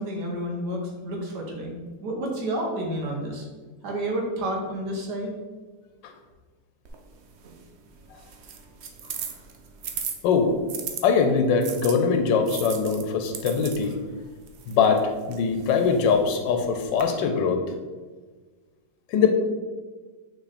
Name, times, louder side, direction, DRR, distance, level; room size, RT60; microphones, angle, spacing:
voice 1, 0.0-3.5 3.8-5.3, right 1 dB, 65° right, 0 dB, 1.8 m, -30 dB
sound 1, 6.9-11.0 11.6-17.0, right 7 dB, 85° right, 0.6 m, -39 dB
voice 2, 11.0-14.0 14.7-17.6 19.1-19.3, left 5 dB, 80° left, 5 dB, 1.4 m, -22 dB
5.7 x 4.1 x 4.2 m, 1.4 s
omnidirectional pair, 1.9 m